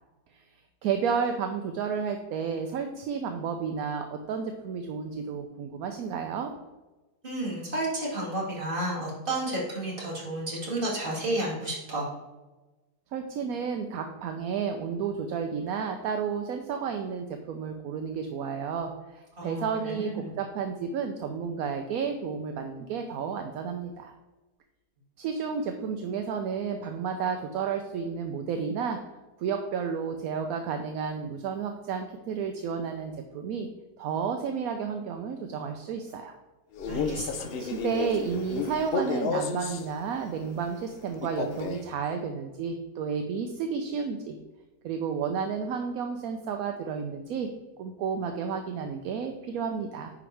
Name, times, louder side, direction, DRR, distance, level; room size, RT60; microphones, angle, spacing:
voice 1, 0.3-6.5 13.1-24.1 25.2-29.0 29.4-33.7 34.0-36.3 37.6-44.4 44.8-47.5 47.8-50.1, right 6 dB, 70° right, 5 dB, 1.0 m, -32 dB
voice 2, 7.2-12.0 19.4-20.3 36.9-37.5, right 1 dB, 30° right, -5 dB, 2.6 m, -31 dB
Male speech man speaking, 36.7-39.9 41.2-41.9, left 4 dB, 85° left, 0.5 m, -31 dB
10.0 x 4.8 x 3.3 m, 1.2 s
omnidirectional pair, 1.8 m